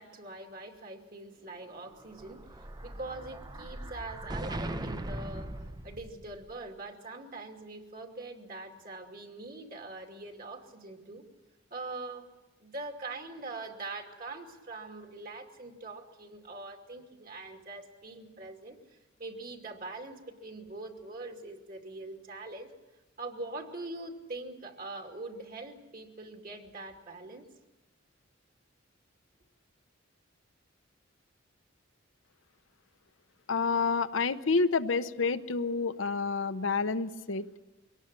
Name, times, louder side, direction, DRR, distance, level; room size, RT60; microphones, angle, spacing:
voice 1, 0.0-5.6 5.8-11.2 11.7-12.3 12.6-22.7 23.2-27.5, right 2 dB, 50° right, 3 dB, 2.6 m, -43 dB
Explosion, 1.9-6.5, right 1 dB, 20° right, 0.7 m, -40 dB
voice 2, 33.5-37.5, left 4 dB, 75° left, 10 dB, 0.9 m, -29 dB
23.5 x 18.5 x 7.6 m, 1.1 s
head